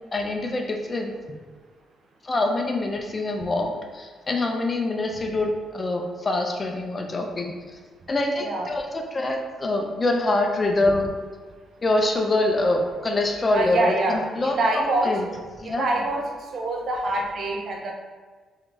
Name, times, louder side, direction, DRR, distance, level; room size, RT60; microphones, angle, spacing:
voice 1, 0.1-1.1 2.2-7.5 8.1-11.1 11.8-15.3 15.6-15.8, left 2 dB, 30° left, 3 dB, 0.6 m, -25 dB
voice 2, 13.5-15.2 15.6-16.3 16.5-17.9, right 2 dB, 55° right, 1 dB, 0.8 m, -25 dB
3.7 x 3.6 x 3.5 m, 1.5 s
cardioid pair, 90°, 0 cm